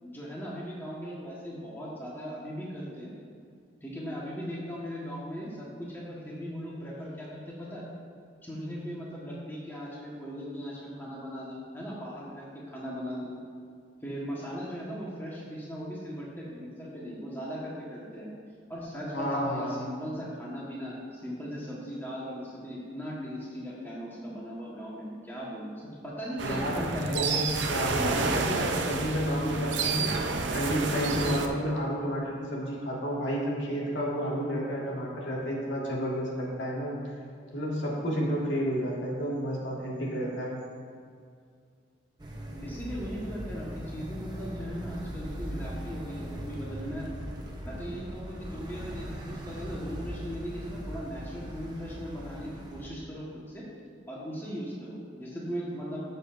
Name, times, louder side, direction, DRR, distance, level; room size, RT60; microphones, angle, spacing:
voice 1, 0.0-3.1 3.8-7.9 8.4-13.3 14.0-18.3 18.7-25.7 26.0-27.4 27.9-28.3 42.6-47.1 47.6-53.7 54.1-56.0, equal, 10° left, -6 dB, 1.3 m, -38 dB
voice 2, 19.1-19.8 26.4-30.1 30.5-37.0 37.5-40.6, equal, 85° left, -4 dB, 1.8 m, -31 dB
sound 1, 26.4-31.5, right 4 dB, 85° right, 0.7 m, -30 dB
sound 2, 42.2-52.9, equal, 25° right, 0.8 m, -40 dB
13.5 x 6.7 x 2.6 m, 2.3 s
head